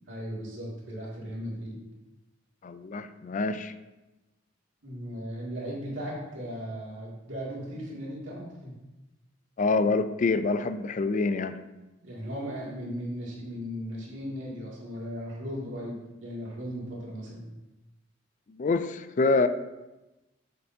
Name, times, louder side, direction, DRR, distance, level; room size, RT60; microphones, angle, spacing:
voice 1, 0.1-1.8 4.8-8.7 9.8-9.9 12.0-17.5, equal, 90° right, -5 dB, 2.3 m, -37 dB
voice 2, 2.6-3.7 9.6-11.6 18.5-19.5, left 3 dB, 40° left, 11 dB, 0.4 m, -26 dB
6.9 x 6.7 x 2.7 m, 1.0 s
head